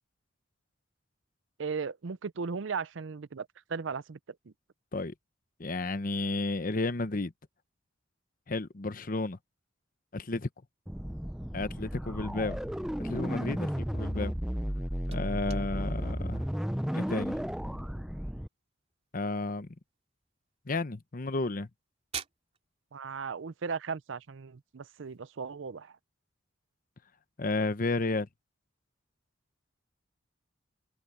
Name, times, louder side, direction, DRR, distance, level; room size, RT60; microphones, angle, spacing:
voice 1, 1.6-4.2 22.9-25.9, right 5 dB, 75° right, 0.6 m, -36 dB
voice 2, 5.6-7.3 8.5-9.4 10.1-10.5 11.5-12.6 13.0-14.3 15.1-16.5 16.9-17.4 19.1-19.7 20.7-21.7 27.4-28.3, left 2 dB, 45° left, 0.9 m, -32 dB
sound 1, 10.9-18.5, equal, 5° right, 0.5 m, -34 dB
sound 2, 14.5-25.2, right 7 dB, 35° right, 2.8 m, -51 dB
head